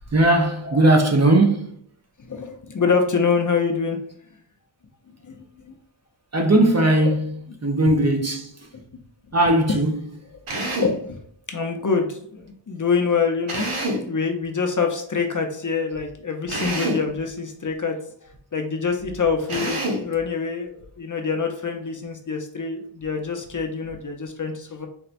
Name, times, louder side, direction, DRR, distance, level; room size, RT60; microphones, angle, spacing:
voice 1, 0.1-1.7 6.3-7.4 7.6-8.5 9.3-9.9, right 1 dB, 35° right, 0.6 m, -18 dB
voice 2, 2.3-4.0 5.2-5.7 10.8-11.2 11.5-13.7 14.1-18.0 18.5-24.9, left 5 dB, 40° left, 0.6 m, -25 dB
Drill, 10.5-11.0 13.5-14.1 16.5-17.1 19.5-20.1, right 1 dB, 85° right, 0.9 m, -26 dB
4.2 x 2.2 x 2.5 m
wide cardioid pair, 60°, 50 cm